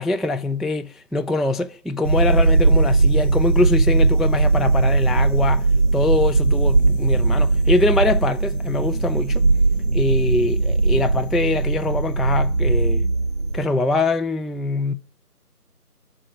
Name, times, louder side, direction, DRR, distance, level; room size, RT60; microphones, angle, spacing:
voice 1, 0.0-5.7 5.9-9.4 9.9-13.1 13.5-14.9, left 2 dB, ahead, 0.3 m, -23 dB
sound 1, 2.0-13.7, right 3 dB, 55° right, 0.6 m, -19 dB
9.8 x 3.7 x 5.2 m
figure-of-eight pair, 170°, 47 cm